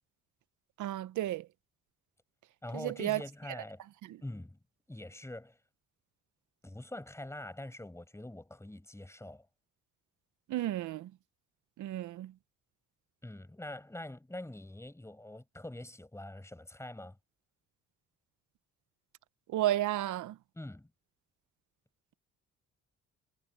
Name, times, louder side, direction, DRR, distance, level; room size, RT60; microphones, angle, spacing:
voice 1, 0.8-1.5 2.7-3.2 4.0-4.2 10.5-11.1 11.8-12.3 19.5-20.4, right 14 dB, 75° right, 0.9 m, -32 dB
voice 2, 2.6-3.8 4.2-4.6 4.9-5.6 6.6-9.5 13.2-17.2 20.5-20.9, left 1 dB, 10° left, 7.4 m, -44 dB
cardioid pair, 90°, 30 cm